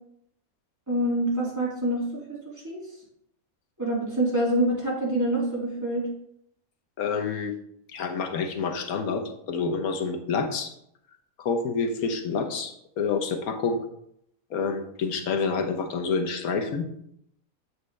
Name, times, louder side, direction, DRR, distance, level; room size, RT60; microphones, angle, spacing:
voice 1, 0.9-2.0 2.3-2.4 2.6-2.8 3.8-6.1, right 1 dB, 10° right, -7 dB, 3.6 m, -26 dB
voice 2, 7.0-7.5 7.9-10.7 11.4-13.8 14.5-16.9, left 5 dB, 90° left, 4 dB, 1.4 m, -28 dB
8.2 x 7.9 x 3.3 m, 0.74 s
omnidirectional pair, 1.5 m